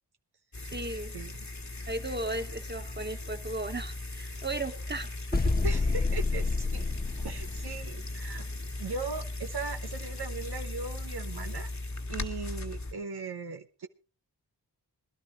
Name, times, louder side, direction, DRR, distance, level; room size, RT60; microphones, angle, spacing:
sound 1, 0.5-12.9, left 2 dB, 40° left, 1.9 m, -38 dB
voice 1, 0.7-1.2 1.9-5.5, right 2 dB, 25° right, 7 dB, 1.9 m, -36 dB
sound 2, 5.3-8.1, left 3 dB, 20° left, 1.0 m, -28 dB
voice 2, 5.6-6.9 7.2-8.5 8.8-11.7 12.1-13.9, right 4 dB, 65° right, 5 dB, 1.1 m, -38 dB
21.0 x 11.5 x 3.8 m, 0.35 s
cardioid pair, 40°, 43 cm